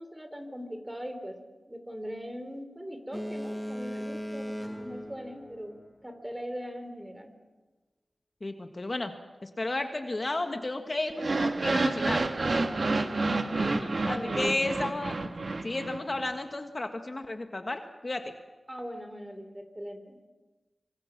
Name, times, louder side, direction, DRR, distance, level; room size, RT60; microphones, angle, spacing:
voice 1, 0.0-1.4 1.7-7.3 14.0-14.8 18.7-20.3, equal, 15° right, 8 dB, 3.4 m, -40 dB
Boat Water vehicle, 3.1-6.2, equal, 5° left, 0.9 m, -38 dB
voice 2, 8.4-9.1 9.4-12.2 13.3-15.1 15.6-18.3, left 2 dB, 40° left, 6 dB, 1.7 m, -33 dB
sound 1, 11.1-16.3, right 3 dB, 55° right, 1.5 m, -29 dB
25.5 x 25.0 x 6.0 m, 1.2 s
wide cardioid pair, 80°, 0 cm